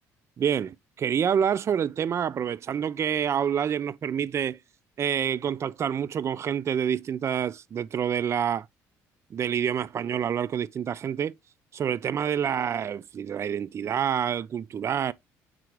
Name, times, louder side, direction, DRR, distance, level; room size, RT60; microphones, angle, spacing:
voice 1, 0.4-4.6 5.0-8.7 9.3-11.3 11.7-15.1, right 8 dB, 40° right, 0.3 m, -27 dB
4.5 x 3.7 x 3.0 m
supercardioid pair, 70°, 7 cm